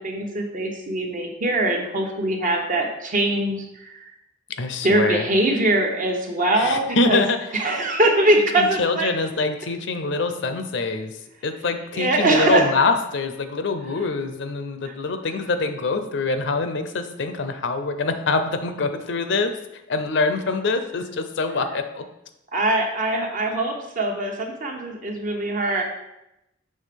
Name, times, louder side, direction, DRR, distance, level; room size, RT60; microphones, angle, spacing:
voice 1, 0.0-4.0 4.8-7.2 7.5-9.1 11.9-12.7 14.8-14.9 22.5-25.8, right 1 dB, 45° right, 2 dB, 1.0 m, -22 dB
voice 2, 4.6-5.3 6.5-7.4 8.6-11.2 11.4-19.5 19.9-22.0, left 3 dB, 65° left, 8 dB, 0.6 m, -24 dB
6.4 x 3.3 x 5.2 m, 0.88 s
head